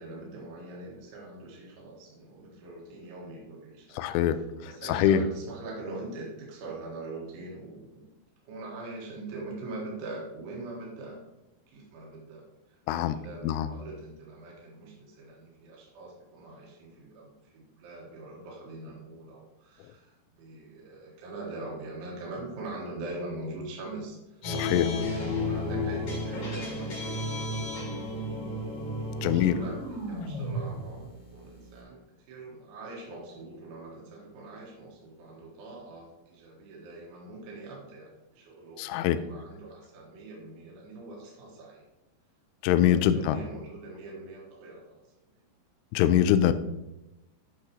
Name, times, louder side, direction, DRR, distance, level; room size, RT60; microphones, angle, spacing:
voice 1, 0.0-4.0 4.3-8.1 8.4-11.2 11.5-27.4 29.2-41.8 42.8-45.0, right 2 dB, 80° right, -2 dB, 3.9 m, -43 dB
voice 2, 4.0-4.4 4.9-5.2 12.9-13.2 13.4-13.7 24.5-24.9 29.2-29.6 38.8-39.2 42.6-43.4 45.9-46.5, left 11 dB, 85° left, 12 dB, 2.6 m, -23 dB
sound 1, 24.4-31.8, left 1 dB, 40° left, 2.9 m, -33 dB
9.6 x 6.4 x 3.0 m, 0.94 s
omnidirectional pair, 5.5 m